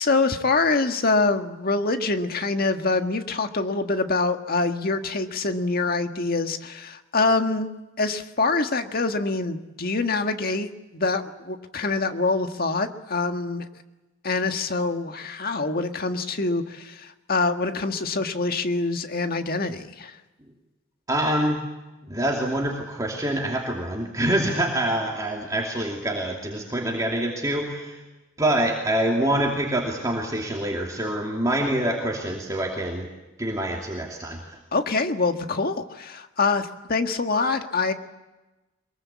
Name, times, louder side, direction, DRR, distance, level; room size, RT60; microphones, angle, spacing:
voice 1, 0.0-13.7 14.2-20.2 34.7-37.9, left 3 dB, 50° left, 7 dB, 1.7 m, -25 dB
voice 2, 21.1-21.6 22.0-28.0 28.4-33.1 33.4-34.6, right 1 dB, 20° right, -1 dB, 2.7 m, -26 dB
23.0 x 22.0 x 8.5 m, 1.1 s
head